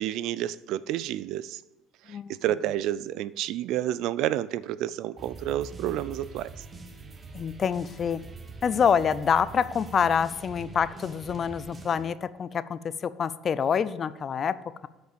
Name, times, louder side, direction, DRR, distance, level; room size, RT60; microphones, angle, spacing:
voice 1, 0.0-1.6 2.1-6.5, right 12 dB, 70° right, 0.3 m, -30 dB
sound 1, 5.2-12.1, right 4 dB, 30° right, 1.1 m, -44 dB
voice 2, 7.3-8.2 8.6-14.6, left 7 dB, 45° left, 0.5 m, -26 dB
7.8 x 5.2 x 6.9 m
supercardioid pair, 80°, 0 cm